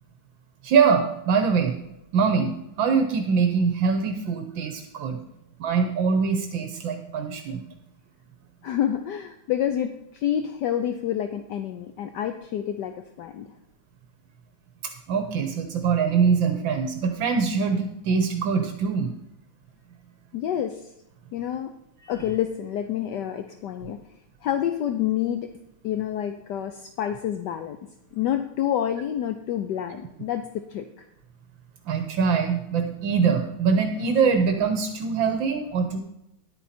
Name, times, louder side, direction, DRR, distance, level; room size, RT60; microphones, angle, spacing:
voice 1, 0.6-1.8 2.1-5.2 5.6-7.6 15.1-19.1 31.9-36.0, right 5 dB, 75° right, 6 dB, 1.7 m, -23 dB
voice 2, 8.6-13.5 20.3-20.9 21.3-21.7 22.1-24.0 24.4-25.5 25.8-31.1, left 10 dB, 70° left, 8 dB, 1.2 m, -28 dB
11.0 x 9.1 x 4.3 m, 0.83 s
omnidirectional pair, 2.1 m